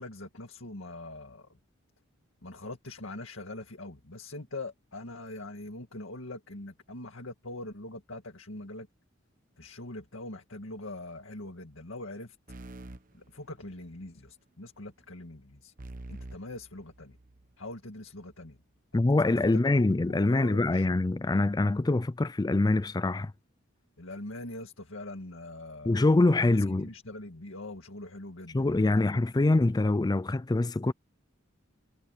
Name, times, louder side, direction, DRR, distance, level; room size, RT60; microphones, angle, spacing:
voice 1, 0.0-1.5 2.4-8.9 9.6-12.4 13.1-15.7 16.1-17.2 17.6-18.6 18.9-21.0 24.0-26.0 26.5-29.3, left 2 dB, 75° left, 2.1 m, -43 dB
sound 1, 12.5-14.1 15.8-17.5, right 2 dB, 45° right, 1.1 m, -46 dB
voice 2, 18.9-23.3 25.9-26.9 28.5-30.9, left 2 dB, 20° left, 0.4 m, -24 dB
head